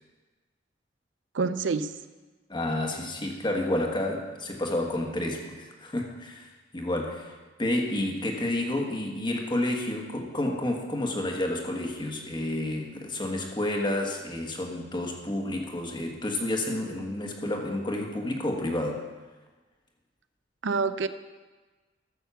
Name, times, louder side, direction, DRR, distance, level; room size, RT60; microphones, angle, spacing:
voice 1, 1.3-1.9 20.6-21.1, right 4 dB, 90° right, 12 dB, 0.6 m, -27 dB
voice 2, 2.5-19.1, left 1 dB, 25° left, 2 dB, 1.5 m, -30 dB
13.5 x 6.4 x 7.0 m, 1.3 s
head